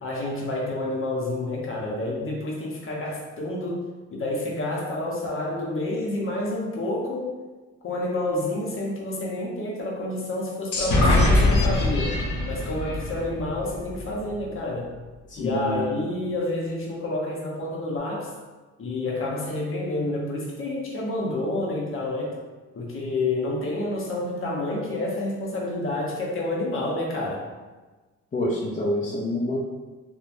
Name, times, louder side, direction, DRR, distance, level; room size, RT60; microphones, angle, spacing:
voice 1, 0.0-3.8 4.1-7.3 7.8-12.2 12.4-14.9 15.4-18.3 18.8-22.4 22.7-27.4, left 2 dB, 45° left, -3 dB, 0.8 m, -29 dB
sound 1, 10.7-14.4, left 1 dB, 75° left, 0.7 m, -23 dB
voice 2, 15.3-15.8 28.3-29.6, left 1 dB, 25° left, -5 dB, 0.4 m, -27 dB
2.9 x 2.2 x 2.5 m, 1.3 s
cardioid pair, 90°, 30 cm